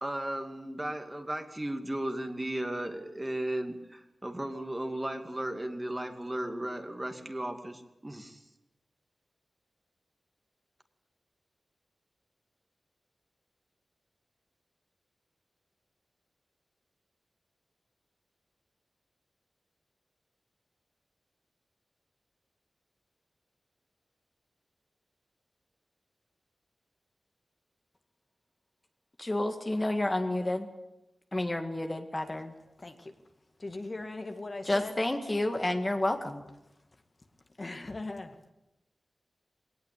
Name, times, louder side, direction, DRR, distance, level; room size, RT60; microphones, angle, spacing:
voice 1, 0.0-8.4, right 1 dB, 20° right, 5 dB, 2.3 m, -35 dB
voice 2, 29.2-30.7 31.3-32.5 34.7-36.4, left 1 dB, 25° left, 5 dB, 1.9 m, -30 dB
voice 3, 32.8-33.1 33.6-35.0 37.6-38.5, left 2 dB, 40° left, 5 dB, 2.1 m, -40 dB
20.0 x 18.5 x 8.4 m, 0.93 s
wide cardioid pair, 65°, 0 cm